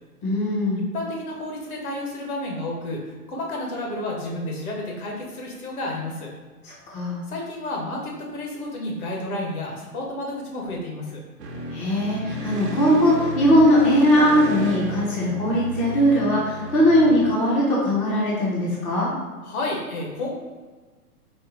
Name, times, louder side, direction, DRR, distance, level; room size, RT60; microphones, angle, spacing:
voice 1, 0.2-0.8 6.9-7.2 11.7-19.1, equal, 15° left, -6 dB, 0.6 m, -20 dB
voice 2, 0.7-6.3 7.3-11.2 19.4-20.3, left 1 dB, 60° left, -1 dB, 1.4 m, -31 dB
sound 1, 11.4-17.3, right 1 dB, 80° right, 0.9 m, -32 dB
4.3 x 2.2 x 3.9 m, 1.3 s
hypercardioid pair, 120°, 48 cm